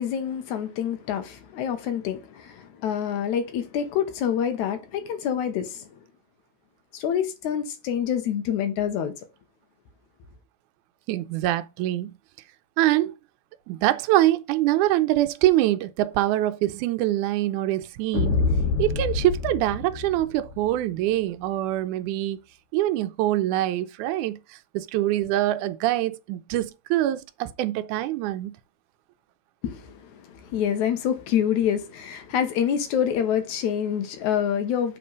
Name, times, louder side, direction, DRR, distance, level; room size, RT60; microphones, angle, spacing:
voice 1, 0.0-5.9 6.9-9.1 29.6-35.0, left 9 dB, 80° left, 2.3 m, -27 dB
voice 2, 11.1-12.1 12.8-13.1 13.7-18.4 18.8-22.4 22.7-24.4 24.7-28.5, right 14 dB, 85° right, 2.1 m, -24 dB
sound 1, 18.1-20.7, left 4 dB, 55° left, 2.0 m, -26 dB
7.1 x 4.3 x 5.1 m
omnidirectional pair, 3.4 m